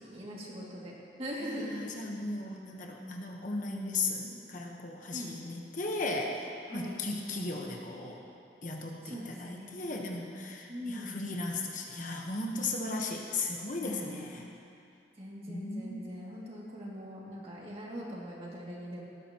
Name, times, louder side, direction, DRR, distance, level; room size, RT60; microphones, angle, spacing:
voice 1, 0.0-1.9 5.1-5.3 6.7-7.0 9.0-9.8 10.7-11.2 13.8-14.4 15.2-19.1, equal, 35° right, -5 dB, 2.5 m, -41 dB
voice 2, 1.4-8.2 8.6-14.5 15.5-16.1, left 2 dB, 50° left, 0 dB, 1.2 m, -36 dB
18.0 x 13.0 x 3.0 m, 2.4 s
head